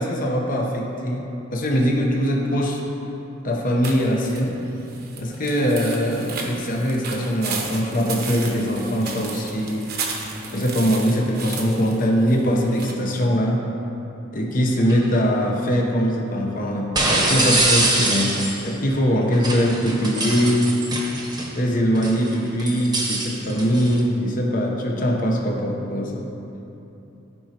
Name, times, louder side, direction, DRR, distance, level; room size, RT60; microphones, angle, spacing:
voice 1, 0.0-2.8 3.4-4.6 5.2-9.8 10.5-13.6 14.3-20.7 21.6-26.3, equal, 45° left, 0 dB, 0.9 m, -22 dB
sound 1, 3.8-12.9, right 4 dB, 50° right, 0.9 m, -34 dB
sound 2, 14.8-15.0 17.0-18.7 19.3-21.5 21.9-24.0, right 2 dB, 20° right, 1.0 m, -24 dB
13.5 x 5.0 x 2.9 m, 3.0 s
head